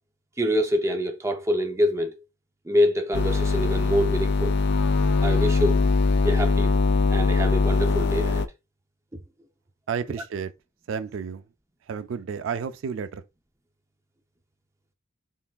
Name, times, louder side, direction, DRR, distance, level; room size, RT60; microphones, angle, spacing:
voice 1, 0.4-2.1 2.7-4.6 5.2-5.9 6.2-6.7 7.1-8.5, equal, 15° right, 0.5 m, -25 dB
sound 1, 3.1-8.5, left 4 dB, 60° left, 0.4 m, -22 dB
voice 2, 9.9-10.5 10.9-11.4 11.9-13.2, right 6 dB, 85° right, 0.4 m, -31 dB
3.8 x 3.4 x 2.3 m
head